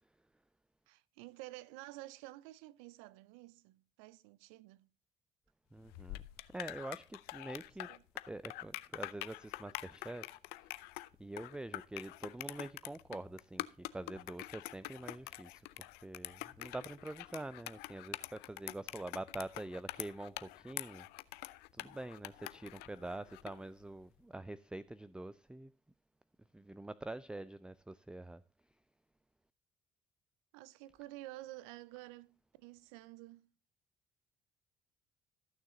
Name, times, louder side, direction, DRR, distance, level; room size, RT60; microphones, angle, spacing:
voice 1, 0.9-4.9 7.9-8.0 30.5-33.5, right 18 dB, 90° right, 0.5 m, -51 dB
voice 2, 5.7-6.2 6.5-7.9 8.3-10.9 11.2-21.1 21.7-25.7 26.5-28.4, right 2 dB, 5° right, 0.4 m, -46 dB
sound 1, 5.8-23.6, left 19 dB, 80° left, 0.6 m, -46 dB
14.5 x 6.4 x 3.8 m
supercardioid pair, 65°, 16 cm